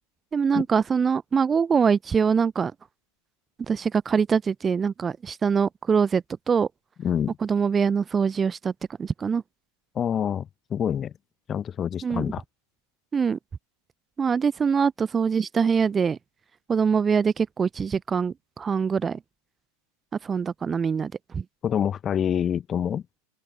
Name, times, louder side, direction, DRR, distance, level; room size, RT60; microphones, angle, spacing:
voice 1, 0.3-2.7 3.7-6.7 7.4-8.7 9.0-9.4 12.0-12.2 13.1-13.4 14.2-16.2 16.7-19.2 20.2-21.4, right 6 dB, 20° right, 0.7 m, -23 dB
voice 2, 7.0-7.4 9.9-11.1 11.5-12.4 21.6-23.0, left 8 dB, 25° left, 0.9 m, -26 dB
open air
figure-of-eight pair, 90°, 0 cm